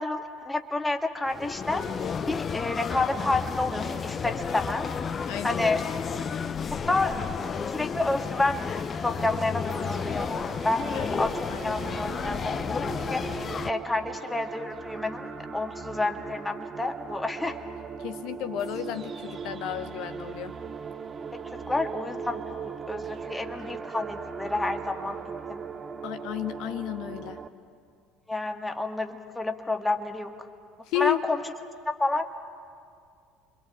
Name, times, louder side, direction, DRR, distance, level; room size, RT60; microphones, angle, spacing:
voice 1, 0.0-1.9 2.2-4.9 5.4-5.8 6.7-8.6 9.0-10.4 10.6-17.6 21.3-25.2 25.5-25.6 28.3-30.4 31.0-31.4 31.9-32.3, left 2 dB, 10° left, 5 dB, 1.9 m, -30 dB
sound 1, 1.3-13.7, left 6 dB, 30° left, 0.9 m, -32 dB
voice 2, 5.3-5.6 10.9-11.8 18.0-20.6 26.0-27.4 30.9-31.2, left 13 dB, 55° left, 10 dB, 0.9 m, -33 dB
sound 2, 9.7-27.5, right 6 dB, 25° right, 1.0 m, -39 dB
29.0 x 25.0 x 7.8 m, 2.3 s
figure-of-eight pair, 60°, 0 cm